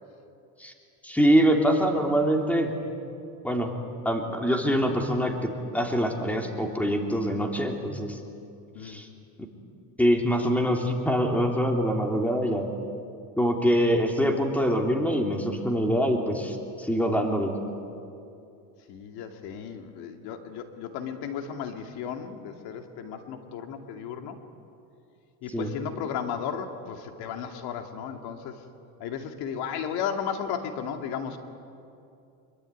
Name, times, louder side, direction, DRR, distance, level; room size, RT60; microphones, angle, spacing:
voice 1, 1.0-2.7 3.4-3.7 4.0-8.2 8.8-9.1 10.0-12.7 13.4-17.5 25.5-25.7, equal, 5° left, 2 dB, 3.2 m, -24 dB
voice 2, 18.9-24.4 25.4-28.6 29.0-31.4, left 7 dB, 65° left, 5 dB, 2.6 m, -34 dB
26.0 x 23.0 x 9.5 m, 2.6 s
cardioid pair, 125°, 40 cm